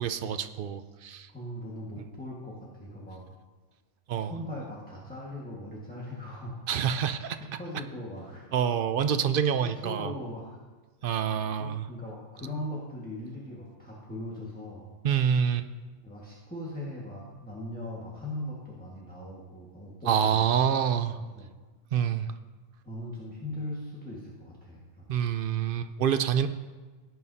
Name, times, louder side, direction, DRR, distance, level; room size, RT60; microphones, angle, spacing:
voice 1, 0.0-1.3 4.1-4.3 6.7-7.4 8.5-10.1 11.0-11.9 15.0-15.7 20.1-21.2 21.9-22.3 25.1-26.5, right 8 dB, 60° right, 10 dB, 0.6 m, -27 dB
voice 2, 1.3-3.2 4.2-6.7 7.4-8.5 9.6-10.6 11.6-14.9 16.0-20.5 21.3-21.5 22.8-25.2, left 1 dB, 5° left, -6 dB, 1.6 m, -39 dB
17.0 x 9.1 x 2.8 m, 1.3 s
omnidirectional pair, 1.3 m